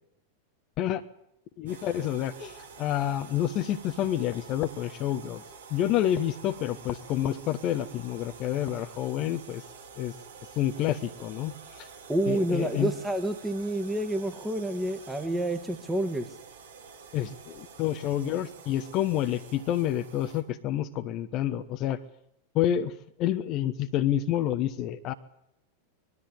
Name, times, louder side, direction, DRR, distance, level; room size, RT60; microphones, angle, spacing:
voice 1, 1.6-5.4 5.7-9.6 10.0-10.1 10.6-11.9 12.3-12.9 17.1-22.0 22.5-22.9 23.2-25.1, left 11 dB, 40° left, 9 dB, 1.1 m, -28 dB
sound 1, 1.7-20.4, right 5 dB, 65° right, 3.7 m, -48 dB
voice 2, 12.1-16.3, right 1 dB, 5° right, 7 dB, 1.8 m, -29 dB
21.0 x 13.5 x 10.0 m, 0.79 s
figure-of-eight pair, 90°, 0 cm